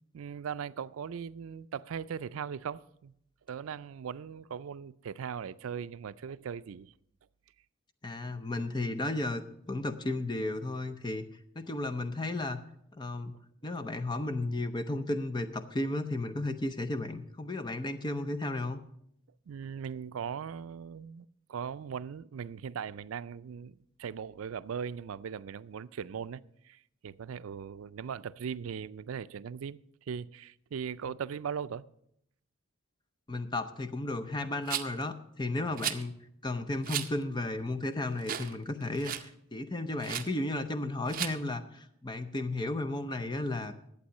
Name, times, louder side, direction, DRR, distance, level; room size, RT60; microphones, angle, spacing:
voice 1, 0.1-3.1 3.5-6.9 19.5-29.8 30.1-31.8 35.6-35.8, right 7 dB, 85° right, 0.4 m, -39 dB
voice 2, 8.0-9.4 9.7-11.3 11.6-12.6 12.9-13.4 13.6-18.8 33.3-36.1 36.4-43.7, left 2 dB, 20° left, 0.6 m, -34 dB
Rattle, 34.7-35.0 35.8-36.0 36.8-37.1 37.6-37.7 38.2-38.6 38.8-39.3 40.0-40.3 41.1-41.4, right 10 dB, 40° right, 0.6 m, -35 dB
11.5 x 8.3 x 6.5 m
head